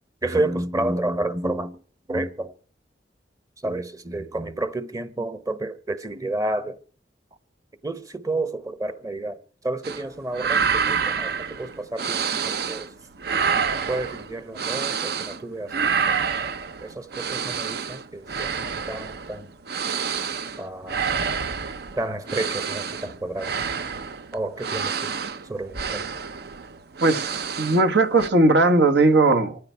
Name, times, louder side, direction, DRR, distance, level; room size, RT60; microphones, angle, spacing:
voice 1, 0.2-1.8 2.1-2.5 3.6-6.8 7.8-9.4 9.6-12.9 13.9-15.7 16.1-16.2 16.8-19.5 20.6-21.0 22.0-23.5 24.3-25.1 25.5-26.1, right 2 dB, 20° right, 0.9 m, -30 dB
sound 1, 9.8-10.1 10.3-12.9 13.2-15.4 15.7-27.9 28.2-28.3, right 6 dB, 60° right, 0.8 m, -28 dB
voice 2, 27.6-29.7, right 2 dB, 80° right, 1.6 m, -18 dB
25.5 x 9.7 x 4.6 m
head